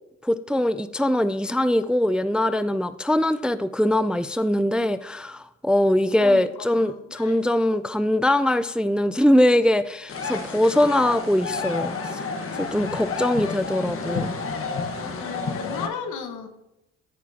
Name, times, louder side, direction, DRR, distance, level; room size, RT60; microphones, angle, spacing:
voice 1, 0.2-12.2 12.5-14.3, left 1 dB, 5° right, 13 dB, 0.3 m, -22 dB
voice 2, 6.7-7.4 15.0-16.5, left 6 dB, 85° left, 6 dB, 1.4 m, -35 dB
sound 1, 10.1-15.9, left 4 dB, 45° left, 1.4 m, -30 dB
14.0 x 6.1 x 2.9 m, 0.88 s
cardioid pair, 90°, 30 cm